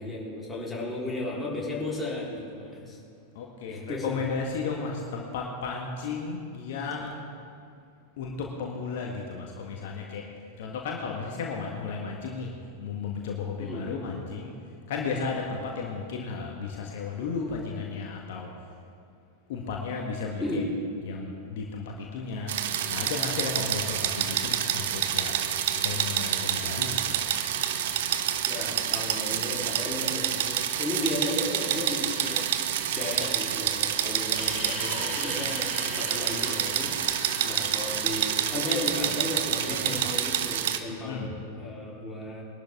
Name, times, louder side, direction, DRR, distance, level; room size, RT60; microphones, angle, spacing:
voice 1, 0.0-3.0 3.7-4.2 13.6-13.9 20.4-20.6 28.5-32.4 32.9-36.9 37.4-42.4, left 2 dB, 10° left, -5 dB, 4.0 m, -34 dB
voice 2, 3.3-7.2 8.2-10.3 10.6-12.5 12.8-14.5 14.9-18.5 19.5-20.6 21.0-22.5 22.9-25.3 25.8-27.2 39.7-40.0 40.9-41.3, left 5 dB, 55° left, 0 dB, 1.5 m, -34 dB
sound 1, 22.5-40.8, right 10 dB, 55° right, 0.8 m, -28 dB
sound 2, 34.3-39.7, left 5 dB, 30° left, 4.5 m, -41 dB
21.5 x 12.0 x 3.7 m, 2.4 s
figure-of-eight pair, 90°, 0 cm